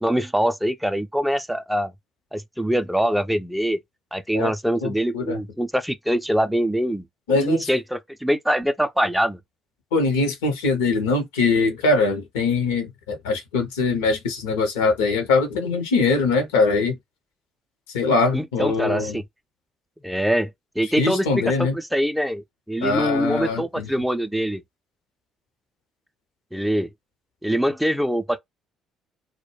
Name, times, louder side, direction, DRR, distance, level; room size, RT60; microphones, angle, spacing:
voice 1, 0.0-1.9 2.3-3.8 4.1-9.4 18.3-19.2 20.0-24.6 26.5-26.9 27.4-28.4, equal, ahead, 0.4 m, -24 dB
voice 2, 4.8-5.4 7.3-7.7 9.9-17.0 17.9-19.2 20.8-21.8 22.8-23.9, left 3 dB, 80° left, 0.7 m, -22 dB
2.2 x 2.1 x 3.1 m
hypercardioid pair, 50°, 0 cm